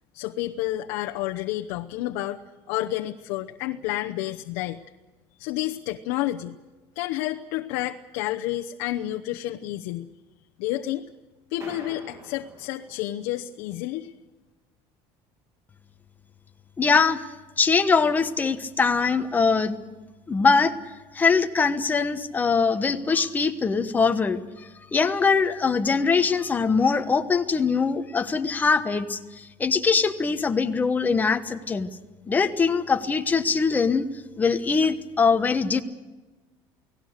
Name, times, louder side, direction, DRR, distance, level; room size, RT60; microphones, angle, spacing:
voice 1, 0.1-2.4 2.7-4.8 5.4-6.6 6.9-10.1 10.6-11.1 11.5-14.1, left 15 dB, 85° left, 4 dB, 0.9 m, -30 dB
sound 1, 11.6-13.6, right 2 dB, 25° right, 2.7 m, -46 dB
voice 2, 16.8-17.2 17.6-19.8 20.3-20.7 21.1-24.4 24.8-31.9 32.3-34.1 34.4-35.8, left 5 dB, 15° left, 8 dB, 1.2 m, -22 dB
29.5 x 18.5 x 6.6 m, 1.2 s
cardioid pair, 160°, 11 cm